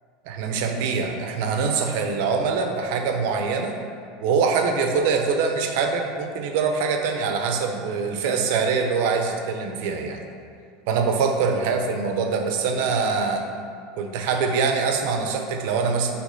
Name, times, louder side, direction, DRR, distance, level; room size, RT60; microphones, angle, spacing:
voice 1, 0.2-3.8 4.2-10.2 10.9-13.5 14.0-16.1, right 5 dB, 60° right, 5 dB, 0.6 m, -24 dB
6.3 x 3.1 x 5.3 m, 2.3 s
supercardioid pair, 165°, 0 cm